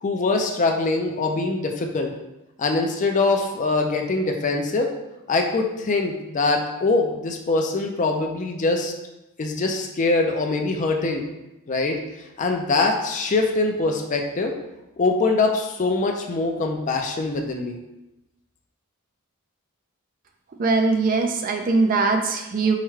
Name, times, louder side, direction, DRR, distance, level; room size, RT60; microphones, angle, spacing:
voice 1, 0.0-2.1 2.6-4.9 5.3-8.9 9.4-11.2 11.7-12.0 12.4-14.5 15.0-17.8, left 3 dB, 35° left, 3 dB, 0.4 m, -23 dB
voice 2, 20.6-22.7, right 3 dB, 40° right, 4 dB, 0.3 m, -21 dB
4.7 x 2.2 x 3.1 m, 0.95 s
head